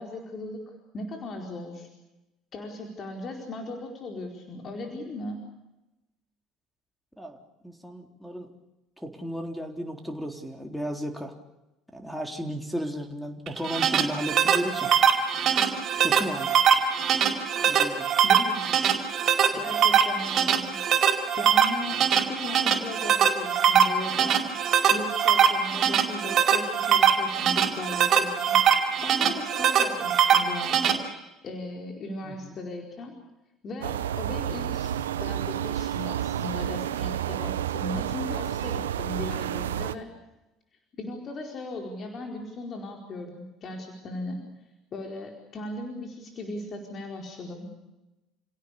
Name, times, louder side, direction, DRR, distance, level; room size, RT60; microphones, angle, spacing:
voice 1, 0.0-1.9 2.5-5.4 18.2-18.7 19.5-20.8 21.4-22.0 22.3-24.4 24.9-31.0 31.4-33.1 33.6-34.9 35.2-40.1 41.0-44.4 44.9-47.7, left 2 dB, 45° left, 2 dB, 4.6 m, -37 dB
voice 2, 7.2-8.5 9.0-11.3 11.9-14.9 16.0-16.5 17.7-18.1 19.5-19.6 32.2-32.6, equal, ahead, 5 dB, 3.7 m, -34 dB
sound 1, 13.5-30.9, right 8 dB, 50° right, 4.9 m, -22 dB
sound 2, 33.8-39.9, right 10 dB, 90° right, 0.9 m, -30 dB
29.5 x 17.5 x 8.4 m, 0.99 s
hypercardioid pair, 70°, 0 cm